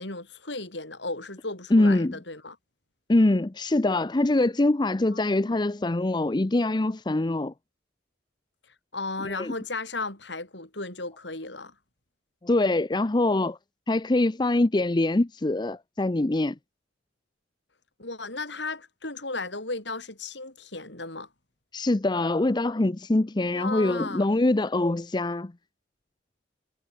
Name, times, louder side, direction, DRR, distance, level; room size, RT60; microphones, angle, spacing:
voice 1, 0.0-2.6 5.1-5.6 8.9-11.7 18.0-21.3 23.5-24.3, left 3 dB, 65° left, 5.8 m, -35 dB
voice 2, 1.7-2.2 3.1-7.5 9.2-9.5 12.4-13.6 13.9-16.6 21.7-25.5, left 2 dB, 25° left, 0.5 m, -24 dB
head